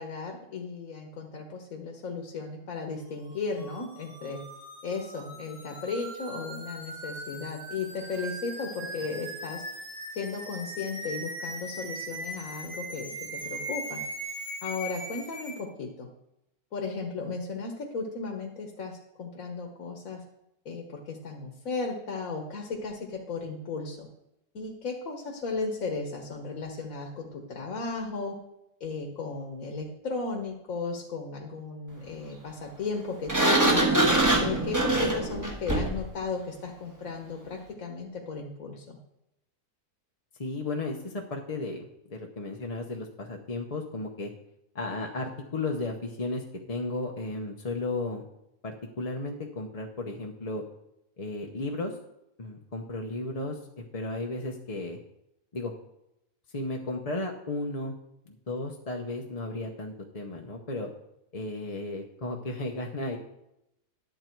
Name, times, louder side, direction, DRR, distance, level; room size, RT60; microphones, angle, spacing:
voice 1, 0.0-4.4 4.8-9.6 10.1-14.0 14.6-16.1 16.7-20.2 20.6-24.1 24.5-28.4 28.8-34.0 34.4-39.0, left 4 dB, 60° left, 1 dB, 1.6 m, -35 dB
sound 1, 3.3-15.6, right 1 dB, 70° right, 5.0 m, -40 dB
Sliding door, 33.3-36.1, right 1 dB, 15° right, 1.1 m, -23 dB
voice 2, 40.4-44.3 44.7-48.2 48.6-50.6 51.2-51.9 52.4-53.6 53.9-55.0 55.5-55.7 56.5-57.9 58.3-60.9 61.3-63.2, left 2 dB, 30° left, 1 dB, 0.7 m, -34 dB
11.0 x 7.8 x 4.5 m, 0.85 s
omnidirectional pair, 1.6 m